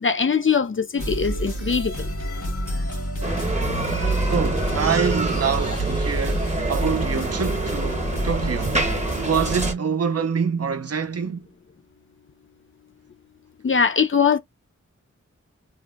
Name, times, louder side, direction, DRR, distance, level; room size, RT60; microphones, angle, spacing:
voice 1, 0.0-1.9 13.6-14.4, left 6 dB, 40° left, 0.5 m, -21 dB
sound 1, 1.0-9.7, equal, 75° left, 1.3 m, -28 dB
Bicycle, 3.2-9.7, right 2 dB, 25° right, 0.8 m, -27 dB
voice 2, 4.3-8.8 9.1-11.5, right 6 dB, 55° right, 0.4 m, -26 dB
2.8 x 2.1 x 3.3 m
wide cardioid pair, 45°, 30 cm